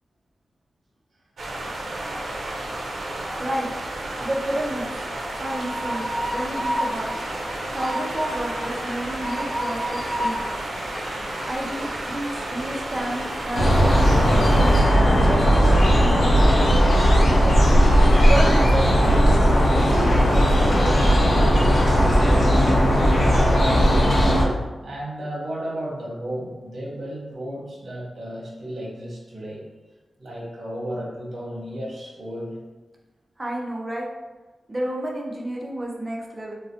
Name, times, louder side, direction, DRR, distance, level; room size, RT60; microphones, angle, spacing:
sound 1, 1.4-14.8, right 1 dB, 75° right, 0.5 m, -32 dB
voice 1, 4.2-4.9 5.4-7.2 7.7-10.4 11.5-14.4 15.0-15.5 16.0-16.4 17.2-17.6 18.2-19.3 19.7-21.7 33.4-34.1 34.7-36.5, right 1 dB, 25° right, -1 dB, 0.5 m, -30 dB
Train, 5.1-22.9, equal, 40° left, 0.8 m, -34 dB
sound 2, 13.5-24.4, equal, 70° left, 0.7 m, -17 dB
voice 2, 23.3-24.6 24.8-29.6 30.2-32.6, equal, 60° right, -5 dB, 0.9 m, -33 dB
3.8 x 2.0 x 2.7 m, 1.2 s
wide cardioid pair, 170°, 0 cm